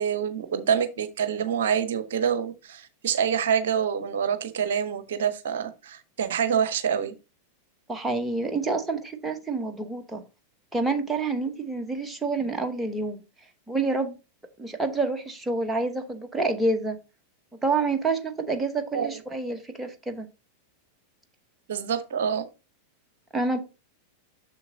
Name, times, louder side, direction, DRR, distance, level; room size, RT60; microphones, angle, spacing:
voice 1, 0.0-7.1 18.9-19.2 21.7-22.4, right 7 dB, 60° right, 0.8 m, -26 dB
voice 2, 7.9-10.2 10.7-13.2 13.7-14.2 14.6-17.0 17.6-20.3 23.3-23.6, right 3 dB, 10° right, 1.0 m, -28 dB
6.9 x 6.9 x 2.7 m
figure-of-eight pair, 90°, 0 cm